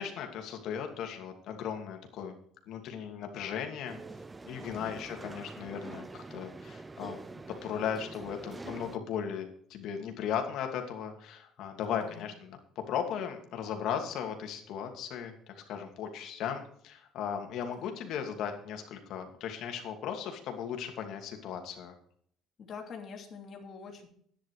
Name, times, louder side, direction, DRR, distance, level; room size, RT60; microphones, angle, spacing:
voice 1, 0.0-2.3 2.7-4.0 4.5-7.2 7.6-12.6 12.9-21.9, left 8 dB, 60° left, 4 dB, 2.6 m, -37 dB
sound 1, 3.9-9.0, right 3 dB, 15° right, 0.6 m, -45 dB
voice 2, 4.7-5.0 11.9-12.3 17.8-17.9 22.6-24.1, left 5 dB, 40° left, 2 dB, 2.8 m, -45 dB
11.5 x 10.0 x 4.9 m, 0.63 s
cardioid pair, 150°, 0 cm